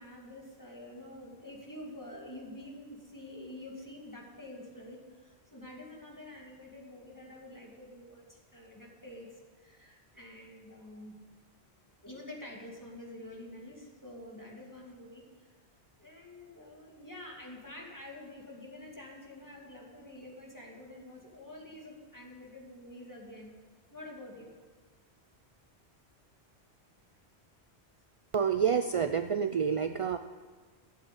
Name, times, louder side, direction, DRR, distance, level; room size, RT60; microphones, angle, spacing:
voice 1, 0.0-11.2 12.0-15.5 16.0-23.5 23.9-24.5, left 1 dB, 15° left, -2 dB, 2.5 m, -48 dB
voice 2, 28.3-30.2, right 7 dB, 50° right, 8 dB, 0.4 m, -28 dB
12.0 x 8.0 x 8.4 m, 1.5 s
omnidirectional pair, 1.1 m